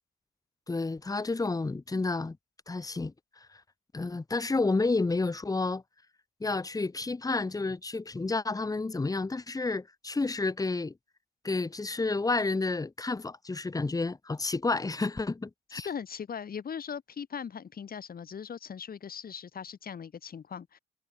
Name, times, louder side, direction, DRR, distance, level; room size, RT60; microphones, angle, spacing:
voice 1, 0.7-2.4 2.7-3.1 3.9-5.8 6.4-10.9 11.4-15.9, left 3 dB, 20° left, 1.4 m, -30 dB
voice 2, 15.9-20.8, left 7 dB, 50° left, 3.5 m, -39 dB
cardioid pair, 90°, 20 cm